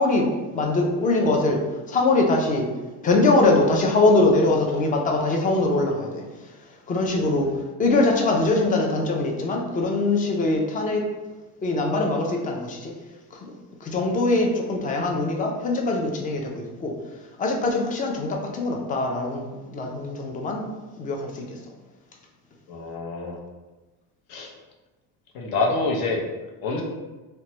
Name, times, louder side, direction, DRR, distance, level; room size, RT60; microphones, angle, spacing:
voice 1, 0.0-1.6 1.9-2.7 3.0-6.2 6.9-7.5 7.8-11.0 11.6-12.9 13.3-13.5 13.8-16.9 17.4-21.6, left 2 dB, 20° left, 1 dB, 0.4 m, -22 dB
voice 2, 22.7-23.4 24.3-24.5 25.3-26.2 26.6-26.8, left 3 dB, 65° left, 0 dB, 0.7 m, -26 dB
2.9 x 2.2 x 2.8 m, 1.2 s
cardioid pair, 125°, 40 cm